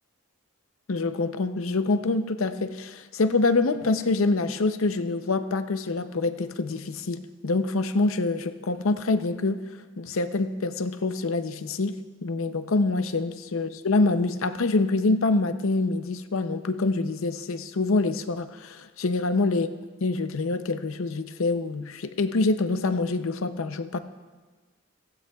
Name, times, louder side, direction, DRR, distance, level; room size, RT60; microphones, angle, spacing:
voice 1, 0.9-9.6 10.0-19.7 20.0-24.0, left 3 dB, 70° left, 10 dB, 0.6 m, -26 dB
16.0 x 15.5 x 2.3 m, 1.3 s
head